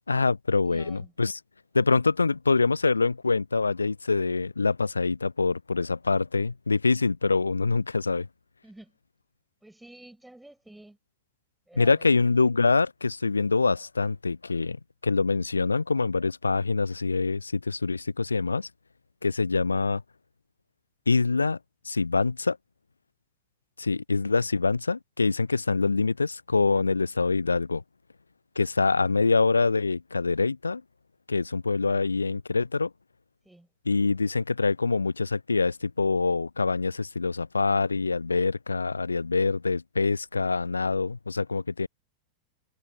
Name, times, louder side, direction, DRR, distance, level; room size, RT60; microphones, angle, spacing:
voice 1, 0.1-1.4 1.7-8.3 11.8-14.8 15.0-18.7 19.2-20.0 21.1-21.6 21.9-22.6 23.8-27.8 28.6-30.8 31.3-32.9 33.9-41.9, left 4 dB, 80° left, 0.5 m, -25 dB
voice 2, 0.6-1.1 8.6-9.0 9.6-11.0 11.7-12.2 33.4-33.7, right 1 dB, 5° right, 7.7 m, -50 dB
figure-of-eight pair, 90°, 0 cm